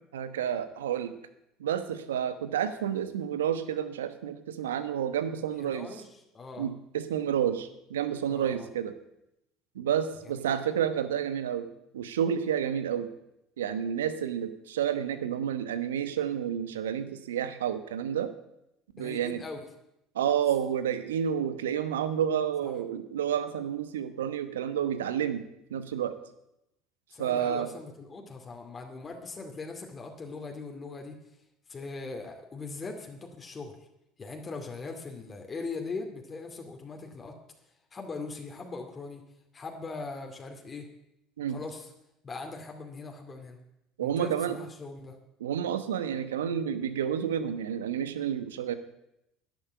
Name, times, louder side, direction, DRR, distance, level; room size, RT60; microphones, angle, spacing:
voice 1, 0.1-1.1 1.6-5.9 6.6-8.9 9.7-11.7 11.9-13.1 13.6-18.3 18.9-19.4 20.1-25.4 25.7-26.1 27.2-27.7 41.4-41.6 44.0-44.6 45.4-48.7, right 9 dB, 80° right, 12 dB, 1.0 m, -30 dB
voice 2, 5.5-6.7 8.3-8.7 19.0-19.6 22.6-22.7 27.1-31.2 31.7-33.8 34.2-37.4 37.9-39.2 39.5-40.9 41.5-41.9 42.2-43.6 44.0-45.2, left 3 dB, 30° left, 3 dB, 2.4 m, -40 dB
11.5 x 10.5 x 8.3 m, 0.85 s
hypercardioid pair, 70°, 0 cm